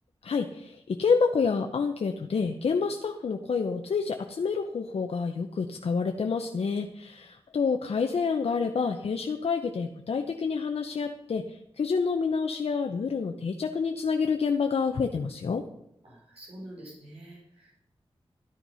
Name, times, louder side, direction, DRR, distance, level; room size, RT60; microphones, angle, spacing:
voice 1, 0.2-15.6, left 5 dB, 85° left, 5 dB, 0.8 m, -28 dB
voice 2, 16.0-17.7, right 1 dB, 80° right, -5 dB, 4.7 m, -46 dB
13.5 x 10.0 x 5.6 m, 0.78 s
cardioid pair, 60°, 10 cm